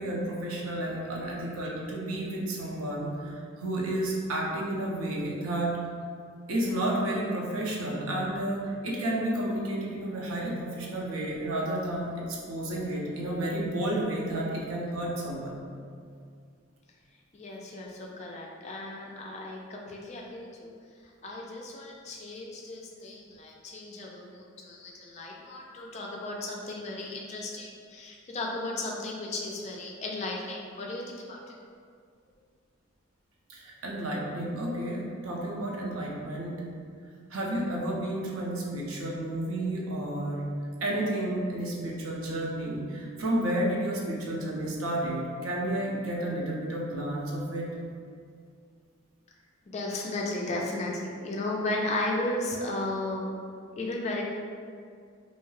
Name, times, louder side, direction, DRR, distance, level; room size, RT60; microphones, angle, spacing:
voice 1, 0.0-5.7 6.5-15.6 33.5-36.6 37.3-40.5 40.8-47.7, right 1 dB, 90° right, -3 dB, 0.5 m, -31 dB
voice 2, 17.3-20.7 21.2-31.6 49.7-53.3 53.7-54.2, left 2 dB, 35° left, -1 dB, 0.3 m, -35 dB
2.7 x 2.2 x 3.1 m, 2.2 s
head